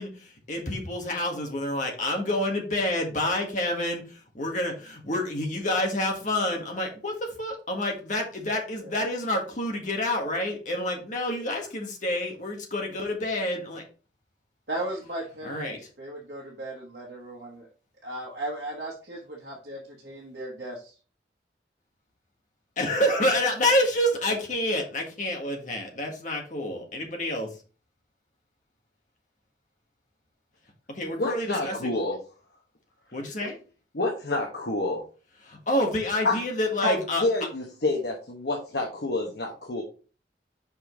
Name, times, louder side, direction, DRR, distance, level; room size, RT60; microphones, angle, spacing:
voice 1, 0.0-13.8 15.4-15.8 22.8-27.5 30.9-31.9 33.1-33.6 35.4-37.2, left 1 dB, 45° left, 1 dB, 1.7 m, -28 dB
voice 2, 14.7-17.7 18.0-21.0, right 1 dB, 60° right, -3 dB, 1.3 m, -36 dB
voice 3, 31.2-32.2 33.4-33.5 33.9-35.0 36.2-36.4 36.8-39.8, left 2 dB, 65° left, 1 dB, 1.1 m, -28 dB
5.6 x 5.1 x 3.8 m, 0.36 s
head